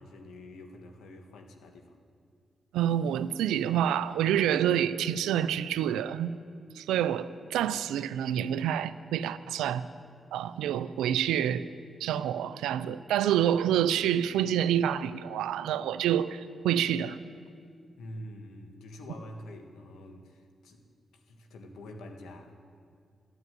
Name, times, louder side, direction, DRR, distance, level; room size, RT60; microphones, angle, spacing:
voice 1, 0.0-2.0 18.0-20.8 21.1-22.6, left 1 dB, 85° left, 4 dB, 1.5 m, -46 dB
voice 2, 2.7-6.3 6.8-9.9 10.3-11.7 12.0-17.2, right 10 dB, 90° right, 14 dB, 0.4 m, -27 dB
13.0 x 9.6 x 9.1 m, 2.2 s
supercardioid pair, 50°, 0 cm